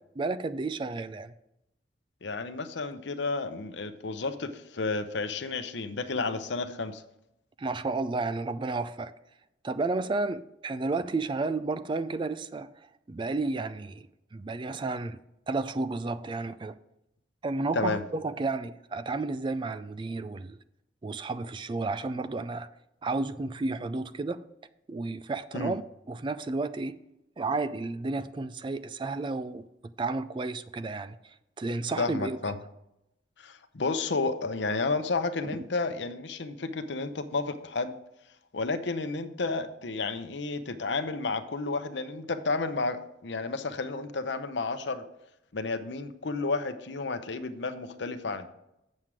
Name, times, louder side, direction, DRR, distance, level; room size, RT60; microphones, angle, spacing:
voice 1, 0.2-1.3 7.6-9.1 9.6-12.7 13.1-14.0 14.3-15.2 15.5-16.8 17.4-20.6 21.0-22.7 23.0-24.4 24.9-25.8 26.1-27.0 27.4-29.6 30.0-32.4 35.5-35.6, right 3 dB, 25° right, 0.3 m, -32 dB
voice 2, 2.2-7.0 17.7-18.0 25.5-25.7 32.0-32.6 33.4-37.9 38.5-45.0 45.5-48.5, left 3 dB, 70° left, 0.7 m, -31 dB
7.5 x 7.4 x 4.8 m
head